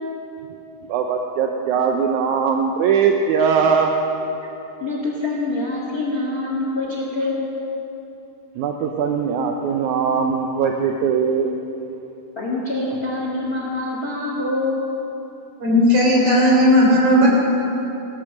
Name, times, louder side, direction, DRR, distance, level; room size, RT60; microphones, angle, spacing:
voice 1, 0.9-3.9 8.6-11.5, right 6 dB, 75° right, 3 dB, 1.8 m, -20 dB
voice 2, 4.8-7.5 12.3-14.9, left 2 dB, 35° left, -3 dB, 1.7 m, -25 dB
voice 3, 15.6-17.3, equal, 55° right, -3 dB, 4.9 m, -15 dB
17.0 x 13.0 x 6.5 m, 2.9 s
omnidirectional pair, 4.2 m